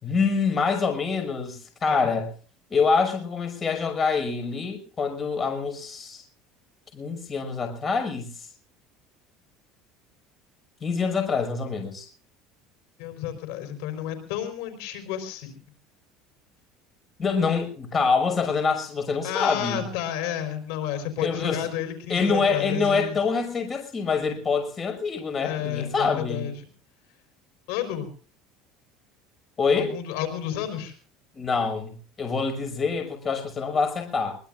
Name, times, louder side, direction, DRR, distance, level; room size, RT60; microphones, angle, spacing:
voice 1, 0.0-2.3 2.7-6.2 6.9-8.5 10.8-12.1 17.2-19.8 21.2-21.6 22.1-26.5 29.6-29.9 31.4-34.4, left 5 dB, 25° left, 6 dB, 5.9 m, -25 dB
voice 2, 13.0-15.6 19.2-23.2 25.4-26.7 27.7-28.1 29.8-31.0, left 10 dB, 80° left, 7 dB, 4.5 m, -31 dB
23.5 x 22.5 x 2.5 m, 0.41 s
cardioid pair, 150°, 0 cm